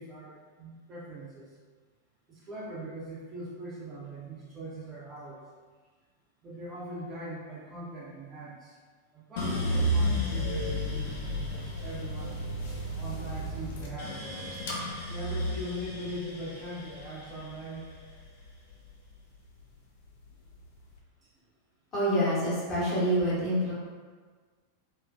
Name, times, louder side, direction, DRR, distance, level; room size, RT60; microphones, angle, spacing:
voice 1, 0.0-1.5 2.3-5.4 6.4-8.8 9.1-12.5 12.9-14.5 15.1-17.9 21.2-21.3, right 1 dB, 25° right, -6 dB, 0.5 m, -41 dB
sound 1, 9.4-19.6 20.0-20.8, equal, 55° left, 0.4 m, -33 dB
voice 2, 21.9-23.7, equal, 30° left, -9 dB, 1.0 m, -26 dB
2.6 x 2.1 x 2.3 m, 1.5 s
figure-of-eight pair, 90°, 0 cm